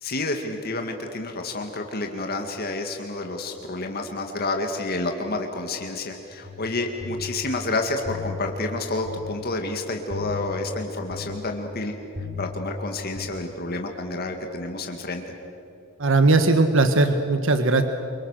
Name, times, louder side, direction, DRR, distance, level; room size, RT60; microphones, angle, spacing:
voice 1, 0.0-11.9 12.4-15.2, left 2 dB, 50° left, 4 dB, 2.0 m, -29 dB
sound 1, 6.4-13.3, left 4 dB, 45° right, 3.9 m, -37 dB
voice 2, 16.0-17.8, right 3 dB, 65° right, 8 dB, 1.3 m, -19 dB
28.5 x 25.0 x 6.5 m, 3.0 s
head